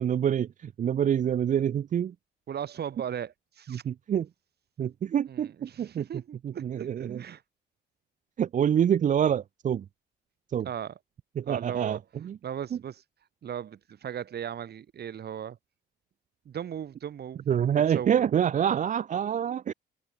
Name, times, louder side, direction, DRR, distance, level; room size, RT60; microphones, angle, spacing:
voice 1, 0.0-2.1 3.7-4.3 4.8-6.0 6.4-7.2 8.4-9.8 10.5-10.7 11.4-12.4 17.5-19.7, right 9 dB, 40° right, 0.4 m, -26 dB
voice 2, 2.5-3.8 5.3-7.4 10.6-11.0 11.5-12.0 12.4-13.0 13.4-15.6 16.4-17.4 17.7-18.3, right 9 dB, 55° right, 1.7 m, -37 dB
cardioid pair, 90°, 20 cm